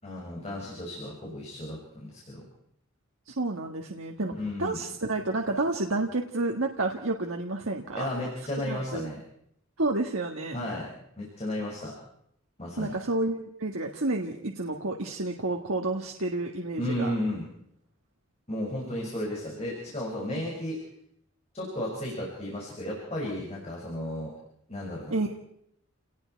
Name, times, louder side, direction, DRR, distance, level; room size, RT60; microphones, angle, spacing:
voice 1, 0.0-2.4 4.3-4.8 8.0-9.2 10.5-10.9 11.2-11.9 12.6-13.0 16.8-17.5 18.5-20.8 21.5-24.3 24.7-25.2, left 1 dB, 30° left, -3 dB, 6.0 m, -33 dB
voice 2, 3.3-4.3 4.6-8.1 8.6-9.1 9.8-10.6 12.8-17.1 20.3-20.5 25.1-25.3, right 2 dB, 80° right, 1 dB, 1.7 m, -30 dB
29.5 x 19.0 x 4.6 m, 0.71 s
head